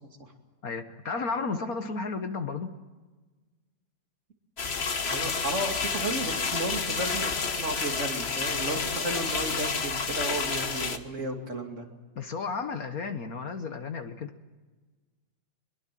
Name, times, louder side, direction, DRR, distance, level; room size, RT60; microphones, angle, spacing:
voice 1, 0.6-2.7 12.1-14.3, left 4 dB, 55° left, 8 dB, 1.6 m, -33 dB
sound 1, 4.6-11.0, left 5 dB, 40° left, 1.4 m, -30 dB
voice 2, 5.1-11.8, right 2 dB, 40° right, 3 dB, 2.9 m, -33 dB
22.5 x 22.5 x 7.5 m, 1.3 s
omnidirectional pair, 2.0 m